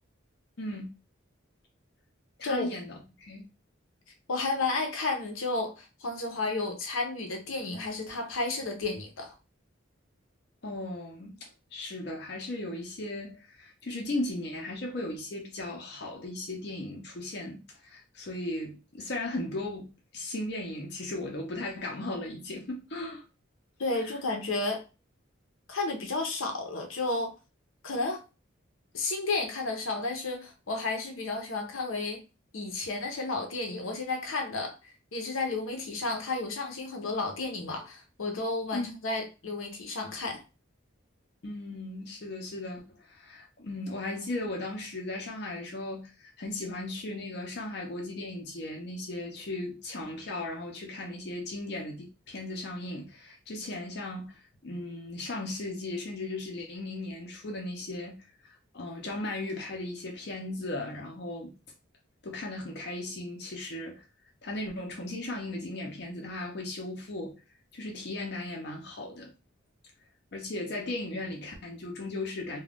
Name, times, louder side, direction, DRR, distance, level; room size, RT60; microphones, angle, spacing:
voice 1, 2.4-3.4 10.6-19.9 20.1-23.2 24.0-24.1 38.7-38.9 41.4-58.1 58.7-61.5 62.2-64.0 64.4-67.3 67.7-69.3 70.3-72.6, left 2 dB, 55° left, 0.6 m, -37 dB
voice 2, 4.3-9.3 23.8-24.8 25.7-27.3 27.8-28.2 28.9-32.2 32.5-34.7 35.1-40.4, left 3 dB, 85° left, 0.8 m, -32 dB
2.4 x 2.3 x 3.4 m
head